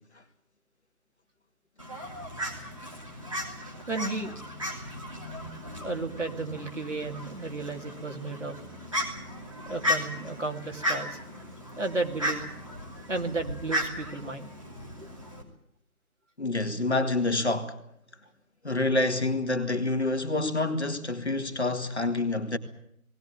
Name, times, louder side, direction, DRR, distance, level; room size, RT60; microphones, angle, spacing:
Fowl, 1.8-15.4, equal, 20° right, 2.9 m, -35 dB
voice 1, 3.9-4.4 5.8-8.5 9.7-11.2 11.8-12.5 13.1-14.5, right 3 dB, 55° right, 2.7 m, -33 dB
voice 2, 16.4-17.8 18.6-22.6, left 2 dB, 50° left, 2.1 m, -27 dB
19.0 x 18.0 x 9.5 m
figure-of-eight pair, 180°, 44 cm